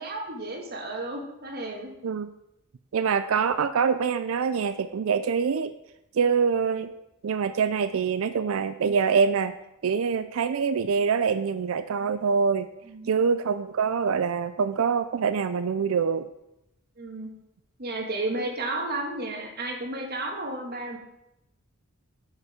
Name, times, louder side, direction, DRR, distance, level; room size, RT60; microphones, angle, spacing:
voice 1, 0.0-1.9 12.8-13.1 17.0-17.3 17.8-21.0, right 2 dB, 50° right, 1 dB, 1.5 m, -32 dB
voice 2, 2.9-5.7 6.1-6.9 7.2-9.5 9.8-12.7 13.1-16.3, right 6 dB, 70° right, 11 dB, 0.4 m, -25 dB
8.0 x 5.3 x 4.9 m, 0.86 s
head